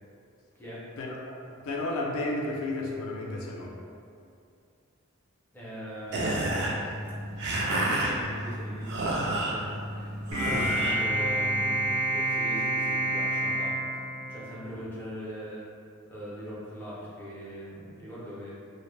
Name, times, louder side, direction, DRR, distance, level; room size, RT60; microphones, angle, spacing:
voice 1, 1.0-3.7 10.5-10.7, left 2 dB, 70° left, -1 dB, 0.3 m, -33 dB
voice 2, 5.5-6.5 7.6-15.6 16.1-18.5, equal, 10° left, -8 dB, 0.5 m, -41 dB
sound 1, 6.1-11.9, right 1 dB, 50° right, 0.3 m, -31 dB
sound 2, 10.3-14.8, right 1 dB, 90° right, 0.9 m, -28 dB
2.1 x 2.0 x 3.0 m, 2.4 s
head